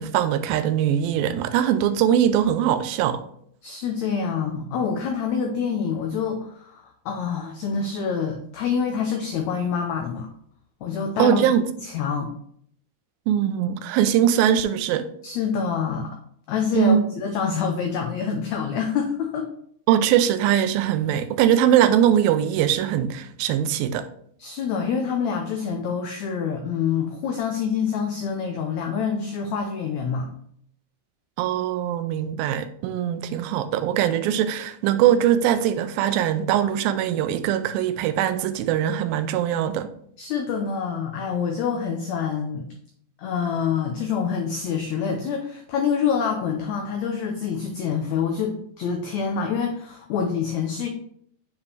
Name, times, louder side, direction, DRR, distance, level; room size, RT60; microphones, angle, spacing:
voice 1, 0.0-3.2 11.2-11.7 13.3-15.1 16.7-17.0 19.9-24.1 31.4-39.9, right 10 dB, 85° right, 2.3 m, -21 dB
voice 2, 3.6-10.3 10.8-11.5 11.8-12.3 15.2-16.2 16.5-19.5 24.4-30.3 40.2-42.6 43.2-50.9, left 6 dB, 85° left, 1.6 m, -26 dB
7.0 x 4.8 x 3.2 m
omnidirectional pair, 4.1 m